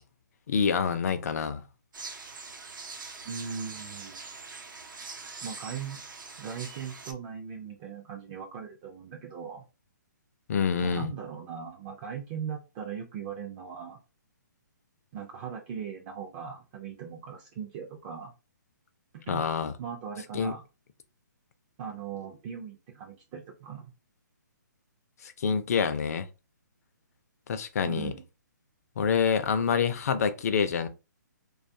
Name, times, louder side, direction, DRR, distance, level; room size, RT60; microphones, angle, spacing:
voice 1, 0.5-1.6 10.5-11.1 19.3-19.7 20.3-20.5 25.2-26.3 27.5-28.1 29.0-30.9, left 6 dB, 50° left, 0.4 m, -27 dB
sound 1, 1.9-7.1, right 4 dB, 90° right, 0.7 m, -43 dB
voice 2, 3.2-4.2 5.4-6.0 6.4-9.6 10.8-14.0 15.1-18.3 19.1-19.4 19.8-20.6 21.8-23.9 27.8-28.2, right 7 dB, 25° right, 0.3 m, -39 dB
2.5 x 2.3 x 2.6 m
hypercardioid pair, 155°, 10 cm